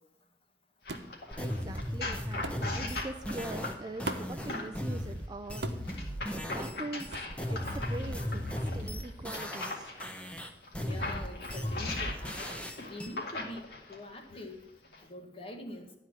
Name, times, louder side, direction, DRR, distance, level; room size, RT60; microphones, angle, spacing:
sound 1, 0.9-4.9 5.9-10.1 10.6-14.0 14.8-15.0, left 2 dB, 65° left, 2.0 m, -40 dB
sound 2, 0.9-1.1 2.4-2.7 4.0-4.4 5.6-5.9 7.1-7.3, right 3 dB, 70° right, 1.0 m, -38 dB
sound 3, 1.3-6.7 7.0-9.7 10.0-13.1, equal, 5° left, 0.9 m, -36 dB
voice 1, 1.4-6.1 6.5-7.3 7.5-9.9, right 2 dB, 25° right, 9 dB, 0.4 m, -42 dB
voice 2, 4.4-4.7 7.6-7.9 10.8-14.6 15.0-15.9, left 1 dB, 35° left, 3 dB, 1.5 m, -44 dB
12.0 x 4.6 x 7.3 m, 0.86 s
head